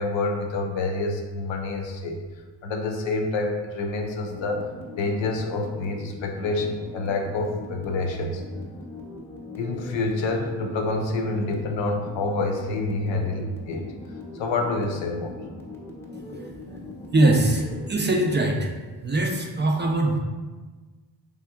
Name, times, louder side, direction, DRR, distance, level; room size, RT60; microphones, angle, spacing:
voice 1, 0.0-2.2 2.6-4.6 5.0-8.4 9.6-13.9 14.3-15.3, left 3 dB, 75° left, 3 dB, 0.5 m, -27 dB
sound 1, 4.2-18.5, left 2 dB, 5° left, 0.7 m, -40 dB
voice 2, 17.1-18.7 19.0-20.2, right 2 dB, 25° right, 1 dB, 0.4 m, -22 dB
3.3 x 2.8 x 2.3 m, 1.3 s
cardioid pair, 50°, 46 cm